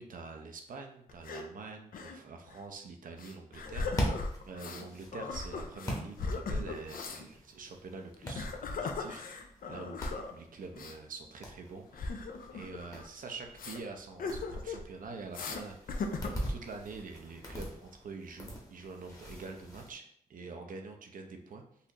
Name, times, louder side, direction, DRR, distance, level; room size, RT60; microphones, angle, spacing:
voice 1, 0.0-10.0 10.3-12.2 12.5-20.0 20.3-21.6, right 4 dB, 65° right, 4 dB, 0.6 m, -46 dB
sound 1, 1.1-1.5 1.9-2.2 2.5-2.6 3.2-4.9 5.1-7.2 8.1-10.3 10.7-10.9 11.9-13.1 13.6-13.8 14.2-14.9 15.3-15.6 15.9-16.5, left 3 dB, 70° left, 0.5 m, -38 dB
sound 2, 3.5-19.9, equal, 20° left, 1.0 m, -43 dB
4.0 x 2.5 x 2.9 m, 0.68 s
cardioid pair, 75°, 15 cm